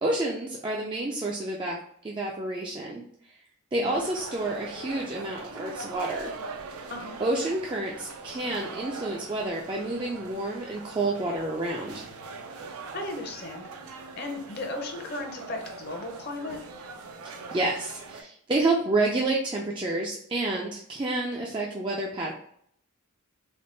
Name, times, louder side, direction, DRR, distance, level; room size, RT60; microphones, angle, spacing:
voice 1, 0.0-1.8 2.0-3.0 3.3-3.4 3.7-6.3 7.2-12.1 17.5-22.3, right 2 dB, 20° right, -2 dB, 0.3 m, -29 dB
sound 1, 3.9-18.2, right 4 dB, 80° right, 0.5 m, -42 dB
voice 2, 12.9-13.7 14.2-16.6, left 2 dB, 45° left, 3 dB, 0.7 m, -35 dB
3.5 x 2.2 x 3.8 m, 0.67 s
head